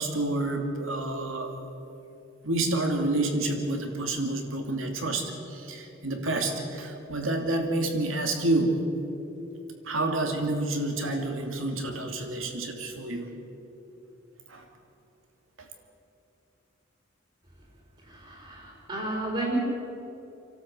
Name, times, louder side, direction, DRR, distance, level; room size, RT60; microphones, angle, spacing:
voice 1, 0.0-1.6 2.4-8.8 9.8-13.3 14.5-14.6 15.6-15.7, right 2 dB, 75° right, 4 dB, 2.7 m, -29 dB
voice 2, 18.1-19.6, right 2 dB, 30° right, -3 dB, 4.6 m, -32 dB
28.0 x 12.5 x 8.1 m, 3.0 s
head